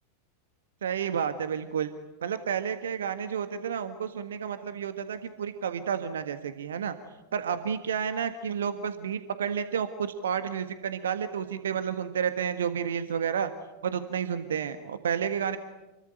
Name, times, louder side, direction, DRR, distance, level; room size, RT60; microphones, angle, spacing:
voice 1, 0.8-1.9 2.2-7.0 7.3-13.5 13.8-15.6, right 7 dB, 65° right, 10 dB, 1.5 m, -31 dB
29.0 x 22.5 x 9.1 m, 1.0 s
figure-of-eight pair, 90°, 0 cm